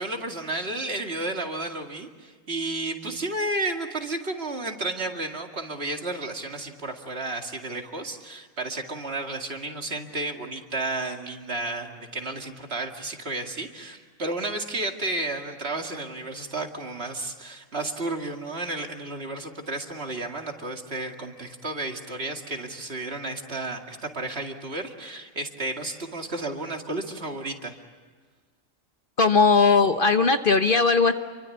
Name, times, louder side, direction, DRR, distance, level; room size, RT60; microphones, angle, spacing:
voice 1, 0.0-27.8, right 2 dB, 50° right, 3 dB, 2.5 m, -32 dB
voice 2, 29.2-31.1, left 4 dB, 45° left, 7 dB, 1.2 m, -19 dB
29.0 x 24.0 x 8.5 m, 1.5 s
omnidirectional pair, 1.4 m